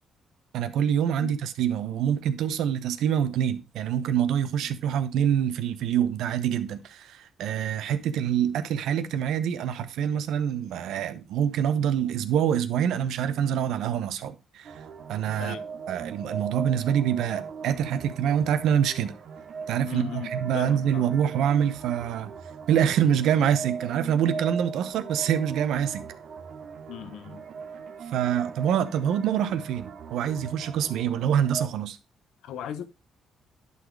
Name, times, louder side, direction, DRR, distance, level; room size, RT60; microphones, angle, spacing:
voice 1, 0.5-14.7 15.1-15.6 15.9-19.1 19.7-22.3 22.7-26.0 28.1-32.0, right 9 dB, 80° right, 0.9 m, -25 dB
sound 1, 14.6-31.6, right 6 dB, 60° right, 1.2 m, -39 dB
voice 2, 19.9-20.3 20.5-21.1 26.9-27.4 32.4-32.9, left 10 dB, 85° left, 0.9 m, -37 dB
11.0 x 4.1 x 4.7 m
cardioid pair, 90°, 0 cm